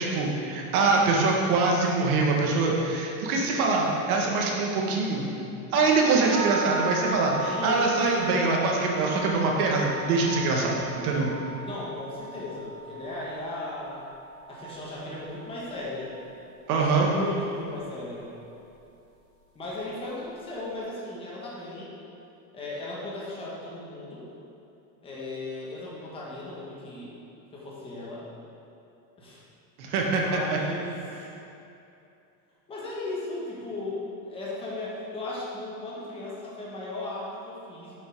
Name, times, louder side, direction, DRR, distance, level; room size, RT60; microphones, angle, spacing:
voice 1, 0.0-5.3 5.7-11.3 16.7-17.1 29.8-30.6, right 3 dB, 75° right, -1 dB, 1.6 m, -24 dB
sound 1, 6.3-16.4, right 2 dB, 30° right, 0.9 m, -37 dB
voice 2, 7.4-8.5 11.6-14.0 14.5-16.1 16.8-18.3 19.5-21.9 22.5-24.3 25.0-27.1 27.5-28.3 29.2-29.4 29.8-31.2 32.7-37.9, left 2 dB, 10° left, -6 dB, 1.2 m, -36 dB
7.6 x 5.5 x 5.2 m, 2.8 s
supercardioid pair, 175°, 44 cm